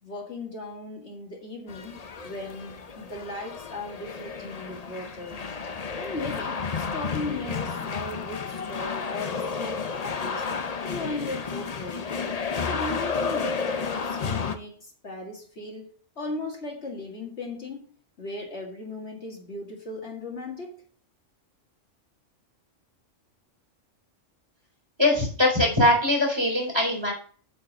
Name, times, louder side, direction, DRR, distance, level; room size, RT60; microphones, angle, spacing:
voice 1, 0.0-5.5 6.0-10.4 10.8-12.1 12.6-17.9 18.2-20.8, left 2 dB, 55° left, 2.2 m, -37 dB
sound 1, 1.7-14.6, left 5 dB, 40° left, 0.7 m, -32 dB
voice 2, 25.0-27.1, left 1 dB, 20° right, 4.1 m, -22 dB
8.2 x 5.2 x 6.2 m
omnidirectional pair, 1.4 m